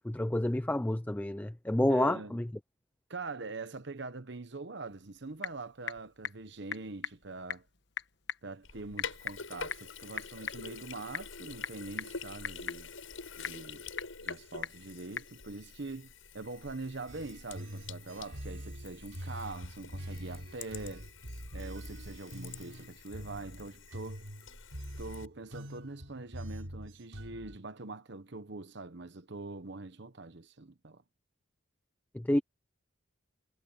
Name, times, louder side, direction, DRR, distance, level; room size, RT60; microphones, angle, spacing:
voice 1, 0.0-2.4 32.1-32.4, left 1 dB, 10° left, 0.4 m, -29 dB
voice 2, 1.9-2.4 3.1-7.7 8.4-12.9 13.4-13.8 14.2-21.1 21.5-24.2 25.0-31.0, right 3 dB, 60° right, 1.1 m, -43 dB
Typing / Telephone, 4.9-15.4, left 7 dB, 55° left, 1.4 m, -43 dB
Sink (filling or washing), 8.6-25.3, left 5 dB, 80° left, 7.8 m, -47 dB
sound 1, 17.1-27.6, equal, 90° right, 6.3 m, -44 dB
head